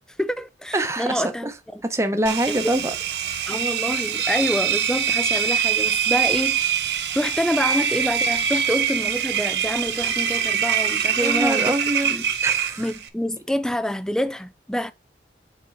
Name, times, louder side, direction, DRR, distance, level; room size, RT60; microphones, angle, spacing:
voice 1, 0.2-1.8 2.7-2.9 3.5-11.7 12.0-12.3 12.8-14.9, equal, 5° left, 0.4 m, -27 dB
voice 2, 0.7-1.5 1.8-2.9 11.2-12.1 12.4-12.9, right 1 dB, 15° right, 0.8 m, -25 dB
Engine, 2.3-13.1, right 8 dB, 70° right, 0.9 m, -24 dB
7.1 x 4.4 x 4.6 m
head